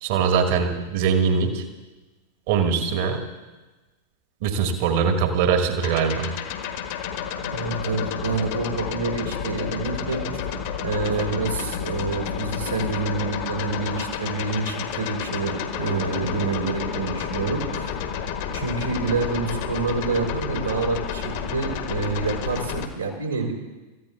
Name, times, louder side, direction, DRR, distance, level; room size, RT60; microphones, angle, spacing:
voice 1, 0.0-1.6 2.5-3.2 4.4-6.3, right 6 dB, 50° right, 5 dB, 1.7 m, -22 dB
sound 1, 5.8-22.9, left 7 dB, 50° left, 1.3 m, -30 dB
voice 2, 7.4-10.2 10.8-17.9 18.5-23.5, right 4 dB, 85° right, -1 dB, 3.7 m, -27 dB
28.0 x 14.5 x 2.4 m, 1.2 s
figure-of-eight pair, 90°, 0 cm